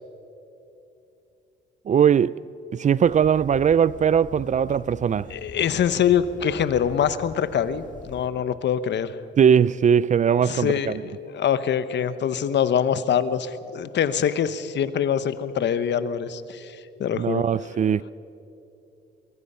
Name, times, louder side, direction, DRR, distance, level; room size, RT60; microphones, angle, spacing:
voice 1, 1.9-2.3 2.7-5.3 9.4-11.0 17.1-18.1, right 8 dB, 40° right, 0.4 m, -20 dB
sound 1, 3.0-8.3, left 5 dB, 40° left, 1.6 m, -44 dB
voice 2, 5.3-9.1 10.4-17.4, left 8 dB, 65° left, 1.1 m, -24 dB
23.0 x 23.0 x 5.6 m
cardioid pair, 90°, 20 cm